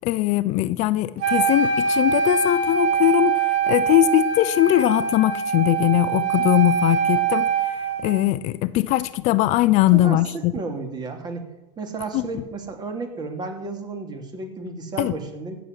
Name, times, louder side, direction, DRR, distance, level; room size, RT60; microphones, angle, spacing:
voice 1, 0.0-10.5 12.1-12.4 15.0-15.1, left 15 dB, 50° left, 0.7 m, -21 dB
Wind instrument woodwind instrument, 1.2-8.2, right 6 dB, 60° right, 3.4 m, -23 dB
voice 2, 10.5-11.5 11.8-15.6, right 3 dB, 30° right, 2.8 m, -32 dB
15.5 x 7.1 x 9.5 m
supercardioid pair, 125°, 15 cm